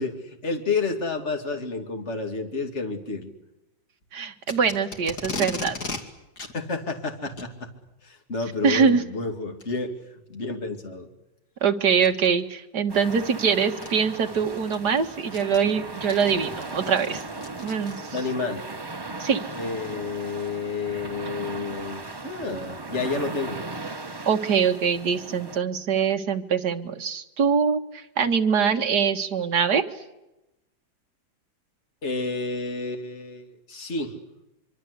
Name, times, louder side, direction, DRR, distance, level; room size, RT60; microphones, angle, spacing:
voice 1, 0.0-3.3 6.5-7.7 8.0-9.9 10.3-11.1 18.1-18.7 19.5-23.6 32.0-34.1, left 3 dB, 35° left, 5 dB, 2.8 m, -30 dB
voice 2, 4.1-5.8 8.6-9.0 11.6-17.2 17.6-18.2 19.2-19.4 24.3-29.8, right 6 dB, 55° right, 6 dB, 2.0 m, -23 dB
Packing tape duct tape, 4.4-6.0 6.4-6.5 7.3-7.5 8.7-8.9 9.6-9.7 10.3-10.4 12.0-12.3 13.3-13.4 13.8-13.9 14.4-18.3, left 3 dB, 50° left, 3.0 m, -36 dB
sound 1, 12.9-25.6, right 3 dB, 20° right, 0.7 m, -37 dB
25.0 x 24.5 x 8.2 m, 0.94 s
omnidirectional pair, 2.1 m